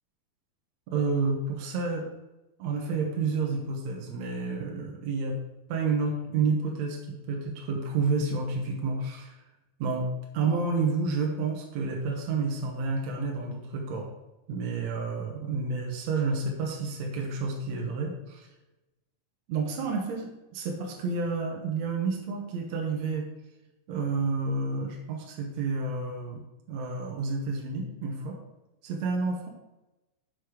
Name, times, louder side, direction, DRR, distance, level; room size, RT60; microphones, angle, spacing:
voice 1, 0.9-2.1 2.6-5.4 5.7-9.3 9.8-10.1 10.3-14.1 14.5-18.5 19.5-23.2 23.9-28.4 28.8-29.5, right 4 dB, 65° right, 0 dB, 2.2 m, -30 dB
6.6 x 6.3 x 4.9 m, 1.0 s
omnidirectional pair, 3.7 m